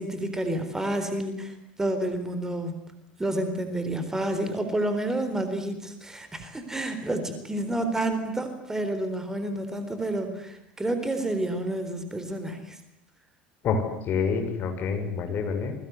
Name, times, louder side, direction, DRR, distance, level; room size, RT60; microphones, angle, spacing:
voice 1, 0.0-2.8 3.2-12.8, right 1 dB, 10° right, 8 dB, 4.0 m, -29 dB
voice 2, 13.6-15.8, left 5 dB, 40° left, 6 dB, 6.2 m, -27 dB
28.0 x 23.0 x 8.2 m, 0.76 s
figure-of-eight pair, 75°, 5 cm